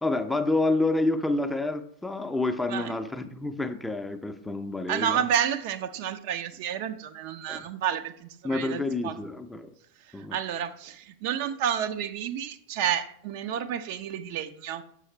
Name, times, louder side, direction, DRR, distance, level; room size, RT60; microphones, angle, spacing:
voice 1, 0.0-5.2 7.5-7.6 8.4-9.7 10.1-10.4, left 2 dB, 5° left, 8 dB, 0.5 m, -28 dB
voice 2, 4.9-9.2 10.1-14.8, right 9 dB, 50° right, 9 dB, 0.5 m, -30 dB
6.3 x 6.1 x 4.4 m, 0.67 s
figure-of-eight pair, 90°, 0 cm